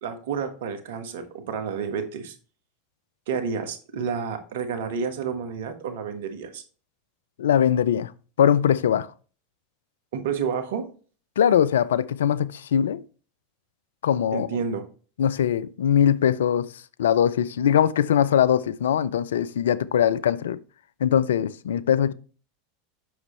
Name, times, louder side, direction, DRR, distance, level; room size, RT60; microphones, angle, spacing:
voice 1, 0.0-2.3 3.3-6.6 10.1-10.9 14.3-14.9, right 6 dB, 70° right, 1.4 m, -30 dB
voice 2, 7.4-8.1 8.4-9.1 11.4-13.0 14.0-14.5 15.2-16.7 17.0-20.6 21.0-22.1, left 9 dB, 80° left, 0.4 m, -21 dB
8.0 x 6.2 x 3.2 m
hypercardioid pair, 90°, 0 cm